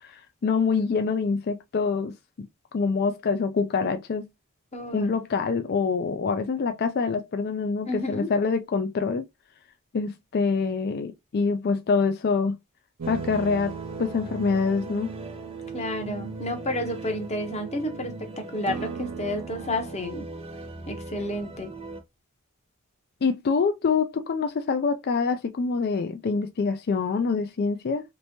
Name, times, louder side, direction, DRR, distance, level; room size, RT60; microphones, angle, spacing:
voice 1, 0.0-2.1 2.7-4.3 4.9-9.3 9.9-12.6 13.1-15.1 23.2-28.0, left 5 dB, 45° left, 0.3 m, -25 dB
voice 2, 4.7-5.1 7.9-8.3 15.7-20.2 20.9-21.7, left 1 dB, 30° left, 0.8 m, -31 dB
sound 1, 13.0-22.0, right 3 dB, 25° right, 0.7 m, -39 dB
sound 2, 13.0-18.2 18.7-20.0, right 6 dB, 80° right, 0.5 m, -40 dB
3.2 x 3.0 x 2.7 m
head